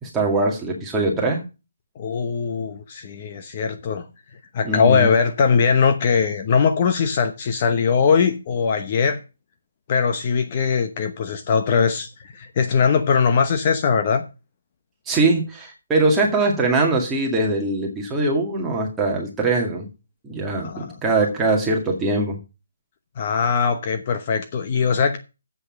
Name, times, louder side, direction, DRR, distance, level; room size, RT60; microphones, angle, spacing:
voice 1, 0.0-1.4 4.6-5.1 15.1-19.9 20.2-22.4, right 2 dB, 10° right, 2.1 m, -22 dB
voice 2, 2.0-4.0 4.5-9.2 9.9-14.2 20.6-21.0 23.2-25.2, left 6 dB, 30° left, 1.0 m, -20 dB
7.9 x 6.5 x 7.4 m
hypercardioid pair, 170°, 0 cm